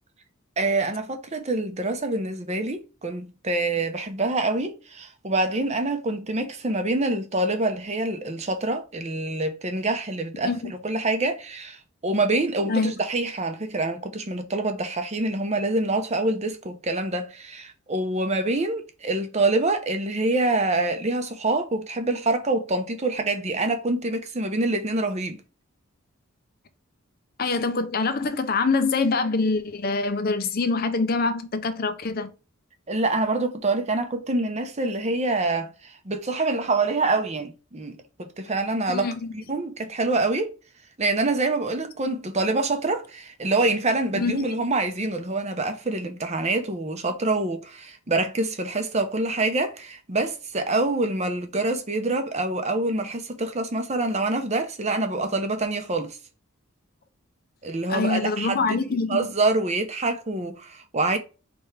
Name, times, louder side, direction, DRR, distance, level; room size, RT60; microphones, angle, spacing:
voice 1, 0.6-25.4 32.9-40.5 41.0-56.2 57.6-61.2, right 2 dB, 30° right, 0.7 m, -26 dB
voice 2, 27.4-32.3 38.9-39.3 44.1-44.4 57.9-59.3, left 3 dB, 45° left, 0.6 m, -25 dB
4.4 x 3.5 x 3.2 m
head